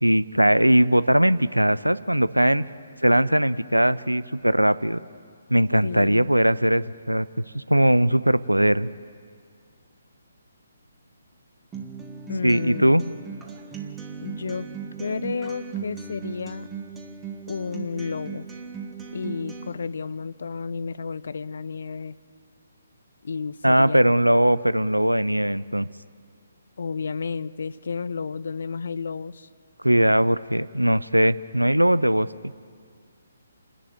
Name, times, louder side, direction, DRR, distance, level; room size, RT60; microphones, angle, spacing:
voice 1, 0.0-2.7 3.0-5.0 5.5-7.3 7.5-8.9 12.4-13.0 23.6-25.9 29.8-32.3, right 1 dB, 90° right, 17 dB, 0.6 m, -20 dB
voice 2, 5.8-6.3 12.3-13.1 14.2-14.7 15.0-16.7 17.5-18.5 19.1-22.2 23.2-24.2 26.8-29.5, left 5 dB, 55° left, 18 dB, 0.6 m, -32 dB
Acoustic guitar, 11.7-19.7, right 6 dB, 10° right, 1.7 m, -37 dB
28.5 x 11.0 x 9.2 m, 2.1 s
figure-of-eight pair, 135°, 0 cm